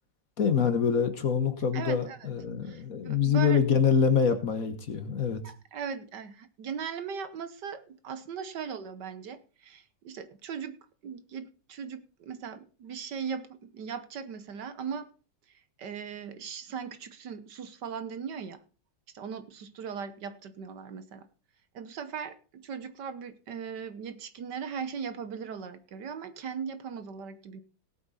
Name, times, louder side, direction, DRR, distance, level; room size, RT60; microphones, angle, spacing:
voice 1, 0.4-5.4, left 6 dB, 50° left, 9 dB, 1.5 m, -25 dB
voice 2, 1.7-2.3 2.6-3.6 5.4-15.1 15.8-18.6 19.1-21.3 21.7-27.6, right 6 dB, 65° right, 12 dB, 1.5 m, -39 dB
18.0 x 8.2 x 4.1 m, 0.37 s
omnidirectional pair, 2.1 m